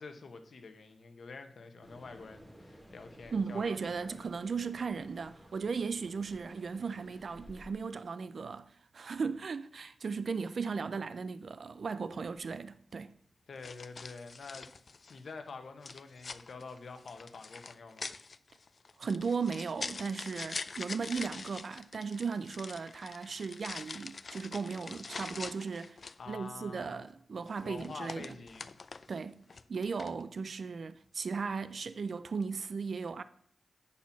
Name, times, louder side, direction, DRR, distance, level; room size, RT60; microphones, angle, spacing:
voice 1, 0.0-4.2 13.5-14.7 15.1-18.1 26.2-27.0 27.6-28.8, left 4 dB, 75° left, 0.9 m, -47 dB
sound 1, 1.8-7.7, equal, 15° right, 1.5 m, -56 dB
voice 2, 3.3-13.1 19.0-26.0 26.3-28.4 29.1-29.4 29.7-33.2, right 5 dB, 70° right, 0.3 m, -36 dB
sound 2, 12.4-12.5 13.6-15.3 15.8-26.3 27.5-29.2 29.5-30.2, left 4 dB, 55° left, 0.4 m, -44 dB
8.3 x 4.3 x 5.8 m
cardioid pair, 70°, 0 cm